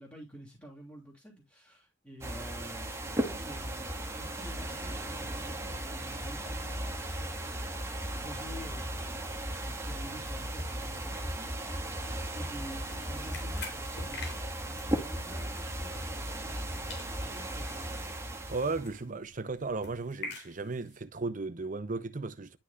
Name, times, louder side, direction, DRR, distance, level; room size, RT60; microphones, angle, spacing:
voice 1, 0.0-7.8 8.1-18.0, equal, 10° left, 3.2 m, -50 dB
sound 1, 2.2-19.0, right 1 dB, 15° right, 1.7 m, -36 dB
sound 2, 12.5-16.6 16.9-21.0, left 3 dB, 65° left, 3.4 m, -48 dB
voice 2, 18.5-22.6, right 3 dB, 45° right, 0.7 m, -35 dB
11.5 x 5.9 x 2.4 m
head